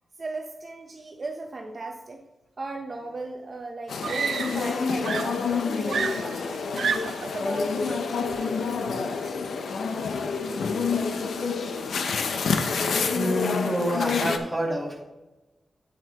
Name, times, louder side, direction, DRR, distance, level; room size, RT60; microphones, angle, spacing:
voice 1, 0.2-2.2 2.6-5.4 5.7-6.8 7.2-9.4, right 3 dB, 40° right, 2 dB, 0.8 m, -37 dB
Screaming, 3.2-3.3 4.0-4.8 5.0-7.3 8.3-8.6, right 6 dB, 80° right, 0.5 m, -30 dB
sound 1, 3.9-14.4, left 5 dB, 90° left, 0.7 m, -28 dB
voice 2, 12.6-15.0, equal, ahead, -4 dB, 2.4 m, -28 dB
9.9 x 7.6 x 3.0 m, 1.1 s
wide cardioid pair, 140°, 0 cm